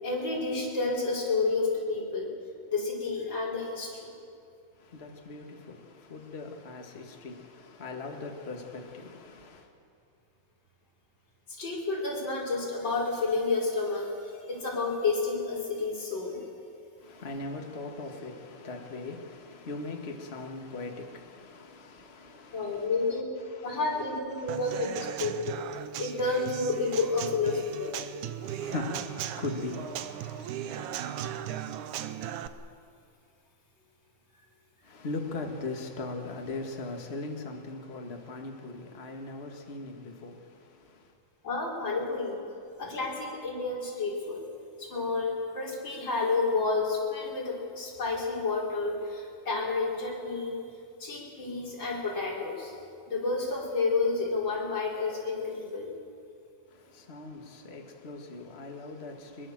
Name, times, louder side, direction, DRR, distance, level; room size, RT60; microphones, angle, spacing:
voice 1, 0.0-2.3 2.7-4.1 11.6-16.4 22.5-23.3 23.6-25.6 26.0-27.9 41.4-42.4 42.8-44.4 44.8-50.6 51.0-52.7 53.1-55.9, left 3 dB, 30° left, 5.3 m, -30 dB
voice 2, 4.8-9.7 17.0-22.9 23.4-23.8 24.4-25.2 28.4-31.4 34.8-41.1 56.7-59.5, left 3 dB, 60° left, 0.6 m, -40 dB
Human voice / Acoustic guitar / Drum, 24.5-32.5, right 10 dB, 75° right, 1.9 m, -37 dB
24.0 x 22.0 x 7.5 m
omnidirectional pair, 4.3 m